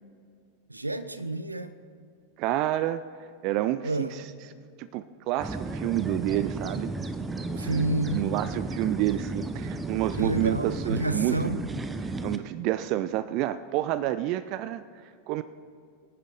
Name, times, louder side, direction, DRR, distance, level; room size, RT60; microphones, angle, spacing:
voice 1, 0.7-1.7 3.8-4.1 7.6-8.3 10.2-11.6, right 2 dB, 85° right, 12 dB, 0.7 m, -29 dB
voice 2, 2.4-3.0 3.4-4.2 4.8-6.9 7.5-7.8 8.1-11.6 12.0-15.4, right 14 dB, 40° right, 15 dB, 0.4 m, -29 dB
sound 1, 5.4-12.4, right 3 dB, 15° right, 0.7 m, -34 dB
sound 2, 6.9-9.9, left 1 dB, 10° left, 2.3 m, -43 dB
25.0 x 10.0 x 4.0 m, 2.3 s
figure-of-eight pair, 90°, 0 cm